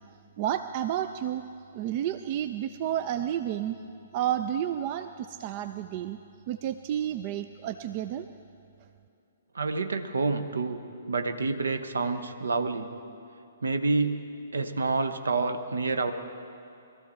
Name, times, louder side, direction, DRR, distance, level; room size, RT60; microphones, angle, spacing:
voice 1, 0.4-1.4 1.7-3.8 4.1-6.2 6.5-8.3, right 11 dB, 35° right, 10 dB, 0.4 m, -31 dB
voice 2, 9.5-10.8 11.1-12.9 13.6-16.1, right 3 dB, 65° right, 8 dB, 1.0 m, -28 dB
22.0 x 14.0 x 4.4 m, 2.7 s
figure-of-eight pair, 120°, 0 cm